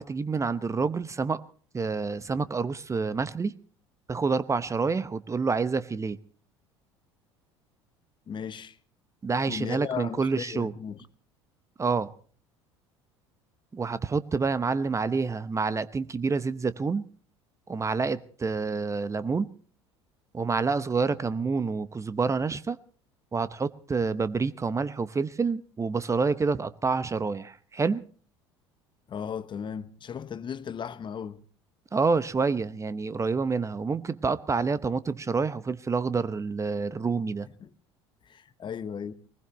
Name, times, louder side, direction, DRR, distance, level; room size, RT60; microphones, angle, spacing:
voice 1, 0.0-1.4 1.7-3.5 4.1-6.2 9.2-10.7 11.8-12.1 13.7-17.0 17.7-19.5 20.3-22.8 23.3-28.0 31.9-37.5, right 4 dB, 20° right, 0.8 m, -28 dB
voice 2, 8.3-8.8 9.5-11.0 29.1-31.4 37.6-37.7 38.2-39.1, left 7 dB, 35° left, 1.0 m, -36 dB
22.0 x 20.0 x 3.1 m
figure-of-eight pair, 65°, 14 cm